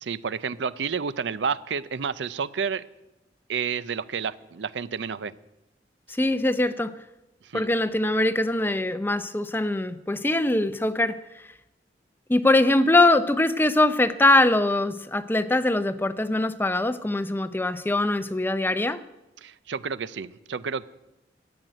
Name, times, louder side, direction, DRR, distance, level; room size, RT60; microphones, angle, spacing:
voice 1, 0.0-2.9 3.5-5.3 7.4-7.7 19.4-20.9, right 6 dB, 80° right, 0.5 m, -30 dB
voice 2, 6.1-6.9 7.5-11.2 12.3-19.0, left 2 dB, 10° left, 0.5 m, -22 dB
13.5 x 7.8 x 9.0 m
head